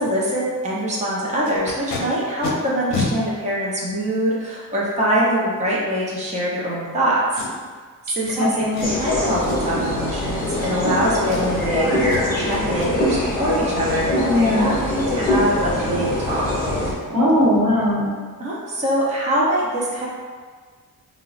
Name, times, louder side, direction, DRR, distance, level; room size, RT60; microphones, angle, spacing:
voice 1, 0.0-7.2 8.1-16.4 18.4-20.1, right 1 dB, 20° right, -6 dB, 0.5 m, -24 dB
Packing tape duct tape, 1.4-2.0 2.4-2.5 2.9-3.1 3.9-4.0 7.3-7.8 8.2-8.4 8.7-9.0 9.4-9.8 10.4-11.0 11.2-11.7 12.1-12.2 12.5-12.9 15.9-16.0 16.4-16.5 16.9-17.0 17.3-17.6 17.8-17.9, left 3 dB, 65° left, 0.6 m, -30 dB
voice 2, 8.4-8.9 14.3-14.7 17.1-18.1, left 1 dB, 80° right, -6 dB, 1.0 m, -19 dB
sound 1, 8.8-16.9, left 1 dB, 25° left, 0.8 m, -23 dB
3.7 x 2.0 x 2.4 m, 1.5 s
wide cardioid pair, 155°, 36 cm